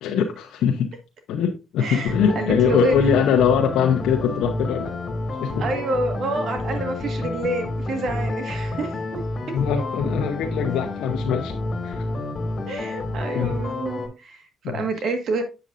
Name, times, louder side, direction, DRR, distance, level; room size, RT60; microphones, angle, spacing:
voice 1, 0.0-0.9 1.3-5.0 5.4-5.7 9.5-11.5 11.8-12.0 13.3-13.6 14.6-14.9, left 7 dB, 85° left, 0.8 m, -22 dB
voice 2, 1.8-3.0 5.5-9.2 12.7-15.4, right 2 dB, 60° right, 1.5 m, -28 dB
sound 1, 2.1-14.1, left 2 dB, 45° left, 2.1 m, -29 dB
7.8 x 6.7 x 2.5 m
cardioid pair, 90°, 0 cm